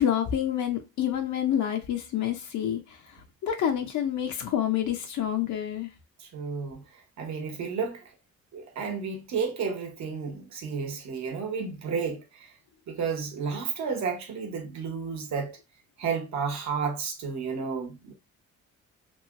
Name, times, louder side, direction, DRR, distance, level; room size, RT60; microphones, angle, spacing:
voice 1, 0.0-5.9, left 10 dB, 70° left, 0.6 m, -28 dB
voice 2, 6.2-6.8 7.2-8.1 8.5-12.5 12.9-15.6 16.0-18.1, right 5 dB, 65° right, 1.1 m, -32 dB
2.9 x 2.7 x 2.5 m
cardioid pair, 90°, 30 cm